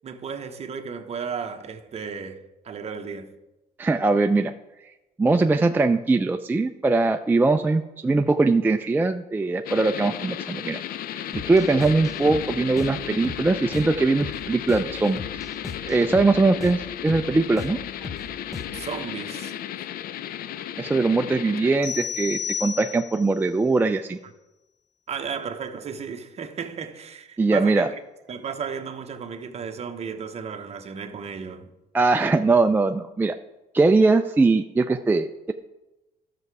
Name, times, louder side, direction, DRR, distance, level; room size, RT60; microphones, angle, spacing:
voice 1, 0.0-3.4 18.7-19.5 25.1-28.0 28.3-31.7 34.9-35.0, right 6 dB, 40° right, 1.0 m, -34 dB
voice 2, 3.8-4.5 5.2-10.8 11.1-15.2 15.9-17.8 20.8-24.2 27.4-27.9 31.9-33.3 33.7-35.5, right 3 dB, 10° right, 0.4 m, -21 dB
sound 1, 9.6-21.8, left 11 dB, 60° left, 0.5 m, -34 dB
sound 2, 11.3-18.9, left 4 dB, 20° left, 0.9 m, -38 dB
sound 3, 21.8-23.3, left 7 dB, 85° left, 4.1 m, -31 dB
12.0 x 6.7 x 4.7 m
cardioid pair, 110°, 17 cm